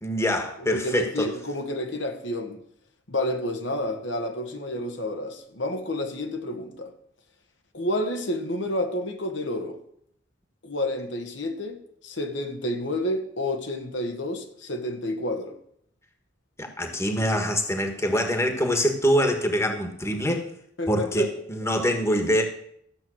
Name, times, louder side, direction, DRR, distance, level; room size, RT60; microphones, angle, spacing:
voice 1, 0.0-1.3 16.6-20.5 20.9-22.4, equal, 15° left, 1.5 m, -24 dB
voice 2, 0.6-2.6 3.1-6.9 7.7-9.8 10.6-15.6 20.8-21.3, left 1 dB, 75° left, 1.6 m, -30 dB
13.5 x 7.5 x 6.4 m
head